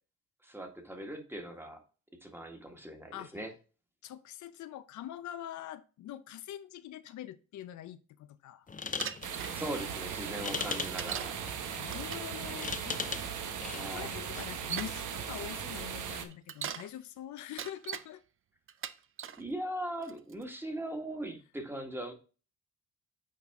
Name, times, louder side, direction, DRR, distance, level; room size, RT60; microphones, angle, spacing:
voice 1, 0.4-1.8 2.2-3.5 9.5-11.3 13.7-14.1 19.4-22.1, right 1 dB, 5° right, 1.5 m, -40 dB
voice 2, 4.0-8.7 11.8-13.0 13.6-18.2, left 12 dB, 75° left, 0.6 m, -44 dB
sound 1, 8.7-14.6, left 5 dB, 25° left, 0.7 m, -41 dB
Bicycle, 9.0-9.5 11.0-11.4 11.9-12.3 13.4-13.5 14.3-15.0 16.3-16.9 17.4-18.1 18.7-19.4 20.0-20.4, right 9 dB, 45° right, 0.5 m, -40 dB
sound 2, 9.2-16.2, right 8 dB, 80° right, 1.0 m, -38 dB
8.4 x 4.1 x 3.5 m
cardioid pair, 90°, 30 cm